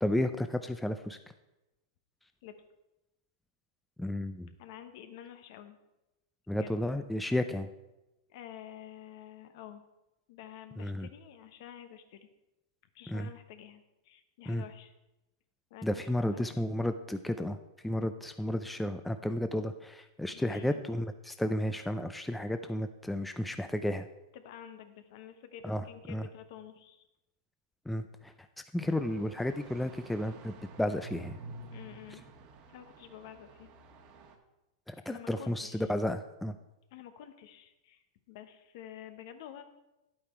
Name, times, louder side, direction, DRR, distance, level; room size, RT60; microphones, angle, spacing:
voice 1, 0.0-1.2 4.0-4.5 6.5-7.7 10.8-11.1 13.1-13.3 14.5-14.6 15.8-17.6 17.8-24.1 25.6-26.3 27.9-28.3 28.7-31.4 34.9-36.6, left 1 dB, 5° left, 8 dB, 0.4 m, -32 dB
voice 2, 4.6-5.8 6.5-6.8 8.3-9.8 10.3-12.2 12.9-14.9 15.7-15.9 16.3-16.7 20.3-20.8 24.3-27.1 31.7-32.3 32.7-33.7 35.0-35.8 36.9-39.6, left 10 dB, 55° left, 9 dB, 1.1 m, -49 dB
sound 1, 28.8-34.4, right 2 dB, 40° right, 1.3 m, -50 dB
10.0 x 8.6 x 4.4 m, 0.97 s
hypercardioid pair, 135°, 2 cm